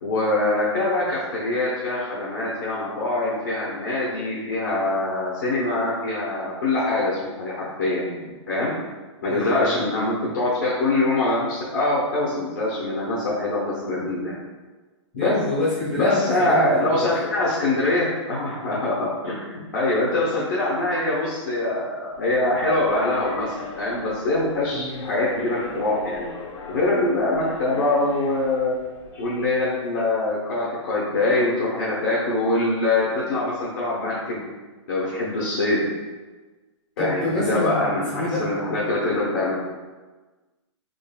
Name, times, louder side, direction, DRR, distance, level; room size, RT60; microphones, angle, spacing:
voice 1, 0.0-8.7 9.2-14.4 15.1-15.3 15.9-26.3 26.7-28.8 29.1-34.4 34.9-35.8 37.0-39.7, left 2 dB, 40° left, -7 dB, 0.8 m, -24 dB
voice 2, 9.3-9.7 15.1-17.1 24.7-25.0 37.0-38.5, left 1 dB, 5° left, -9 dB, 0.6 m, -26 dB
sound 1, 22.1-29.7, left 3 dB, 85° left, 0.7 m, -40 dB
3.8 x 3.8 x 2.2 m, 1.3 s
hypercardioid pair, 175°, 16 cm